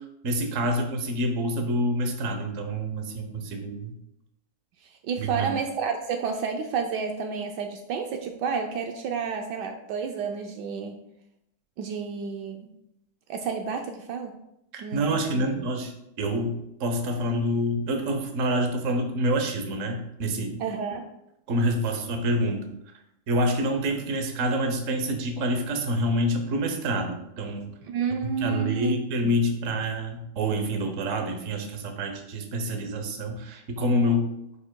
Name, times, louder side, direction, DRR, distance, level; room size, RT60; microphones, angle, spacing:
voice 1, 0.2-3.9 5.2-5.5 14.7-15.9 16.2-20.6 21.5-22.7 23.3-27.7 28.2-34.3, equal, 50° right, 4 dB, 1.1 m, -27 dB
voice 2, 4.8-11.0 11.8-12.7 13.3-14.3 14.8-15.5 20.6-21.1 27.8-29.0 29.2-29.3, right 6 dB, 75° right, 4 dB, 1.2 m, -30 dB
9.7 x 5.0 x 2.2 m, 0.83 s
omnidirectional pair, 1.9 m